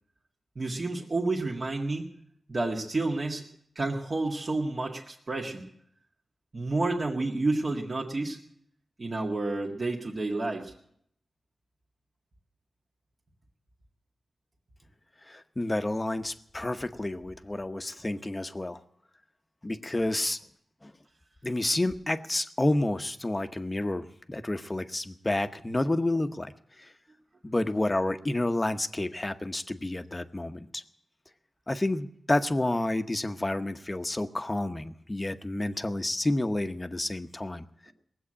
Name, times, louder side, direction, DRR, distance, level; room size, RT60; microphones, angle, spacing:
voice 1, 0.6-2.1 2.5-3.4 3.8-5.7 6.5-8.4 9.0-10.7, right 2 dB, 40° right, -2 dB, 1.8 m, -30 dB
voice 2, 15.3-18.8 19.6-20.4 20.8-20.9 21.4-26.9 27.4-30.8 31.7-37.6, left 1 dB, 20° left, 9 dB, 0.9 m, -30 dB
19.5 x 7.9 x 8.7 m, 0.70 s
wide cardioid pair, 80°, 0 cm